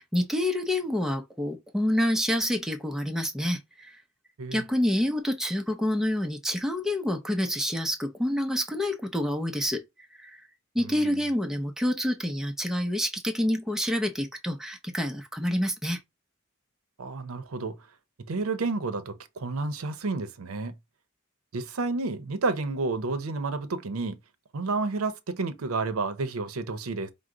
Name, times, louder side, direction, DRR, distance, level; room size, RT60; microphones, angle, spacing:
voice 1, 0.0-4.0 4.5-9.8 10.2-10.4 10.7-16.0, left 1 dB, ahead, 0.5 m, -28 dB
voice 2, 10.8-11.2 17.0-17.8 18.3-20.7 21.5-24.2 24.5-27.1, right 3 dB, 80° right, 0.6 m, -30 dB
4.7 x 2.0 x 3.7 m
head